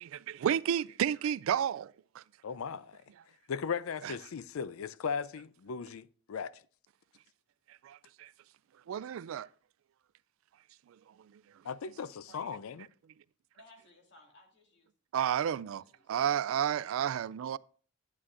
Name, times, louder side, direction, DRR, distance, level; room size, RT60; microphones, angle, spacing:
voice 1, 0.0-2.2 4.0-4.1 7.8-8.3 8.9-9.5 15.1-17.6, right 9 dB, 70° right, 0.3 m, -31 dB
voice 2, 2.4-3.0 3.5-6.5 11.6-12.9, left 6 dB, 80° left, 0.4 m, -37 dB
voice 3, 13.5-14.9 15.2-16.1 17.0-17.1, left 2 dB, 60° left, 2.2 m, -61 dB
11.0 x 9.6 x 2.5 m
head